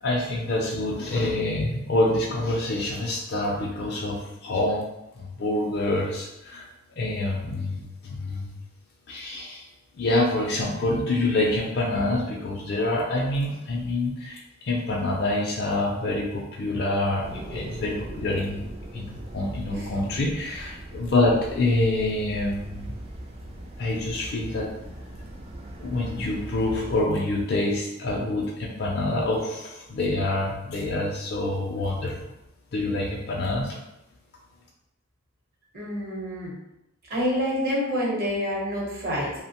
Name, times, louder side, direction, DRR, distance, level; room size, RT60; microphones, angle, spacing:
voice 1, 0.0-4.8 5.2-6.7 7.0-8.5 9.1-9.6 10.0-18.6 18.9-22.9 23.8-24.7 25.8-32.1 32.7-33.8, left 2 dB, 50° left, -3 dB, 0.4 m, -26 dB
sound 1, 17.2-27.0, right 1 dB, 30° right, 0.3 m, -40 dB
voice 2, 35.7-36.6 37.1-39.3, equal, 45° right, -4 dB, 0.8 m, -27 dB
2.8 x 2.0 x 2.8 m, 0.89 s
head